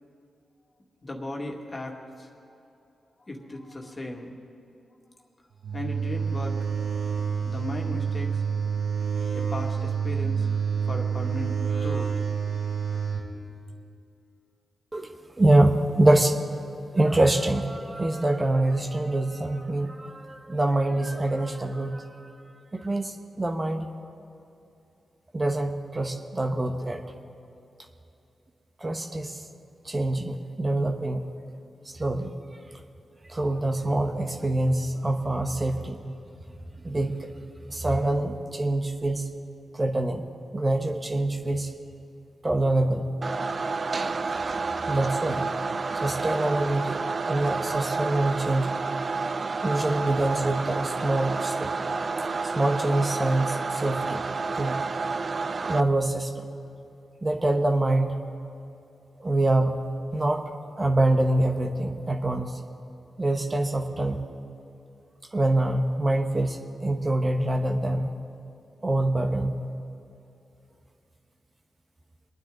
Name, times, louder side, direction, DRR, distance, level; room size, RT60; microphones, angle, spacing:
voice 1, 1.0-2.3 3.3-4.3 5.7-6.7 7.4-8.4 9.3-10.5 10.8-11.5 11.8-12.1 12.5-12.6 13.3-13.4, left 1 dB, 40° left, 1 dB, 2.1 m, -36 dB
sound 1, 5.6-13.2, right 6 dB, 90° right, 3.0 m, -28 dB
voice 2, 14.9-16.4 16.9-22.3 22.7-23.9 25.3-27.0 28.8-29.4 29.8-31.3 31.9-32.3 33.3-36.0 36.8-37.3 37.7-39.2 39.7-40.2 40.5-41.7 42.4-43.1 44.9-45.5 46.0-47.0 47.3-48.7 49.6-51.7 52.5-54.2 54.6-54.8 55.6-56.4 57.2-58.1 59.2-59.8 60.1-60.5 60.8-62.6 63.2-64.2 65.3-68.1 68.8-69.6, right 1 dB, 30° right, 4 dB, 1.1 m, -25 dB
sound 2, 43.2-55.8, right 4 dB, 50° right, 0.5 m, -30 dB
23.5 x 9.6 x 3.9 m, 2.7 s
supercardioid pair, 45°, 0 cm